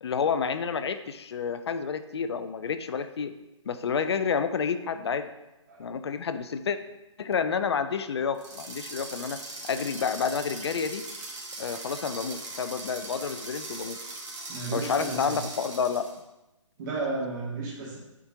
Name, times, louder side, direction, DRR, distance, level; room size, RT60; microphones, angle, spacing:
voice 1, 0.0-3.3 3.7-5.3 5.8-6.8 7.2-9.4 9.7-11.0 11.6-14.0 14.7-16.1, left 6 dB, 55° left, 10 dB, 0.5 m, -29 dB
sound 1, 8.3-16.2, right 2 dB, 60° right, 2.2 m, -40 dB
voice 2, 14.5-15.4 16.8-18.0, right 3 dB, 35° right, -4 dB, 2.3 m, -33 dB
7.3 x 4.4 x 3.7 m, 0.96 s
figure-of-eight pair, 140°, 17 cm